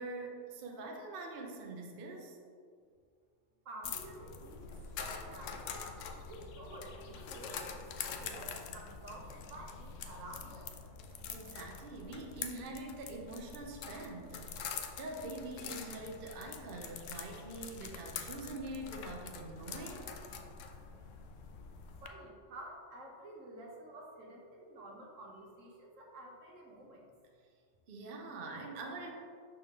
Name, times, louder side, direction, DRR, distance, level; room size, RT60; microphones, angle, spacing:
voice 1, 0.0-2.4 11.3-20.1 27.9-29.1, right 2 dB, 55° right, 1 dB, 0.8 m, -44 dB
voice 2, 3.6-5.8 6.2-7.8 8.0-10.7 22.0-27.1, right 1 dB, 75° right, 0 dB, 1.3 m, -50 dB
sound 1, 3.8-22.1, left 6 dB, 75° left, 0.9 m, -45 dB
6.0 x 4.4 x 3.6 m, 2.1 s
omnidirectional pair, 1.3 m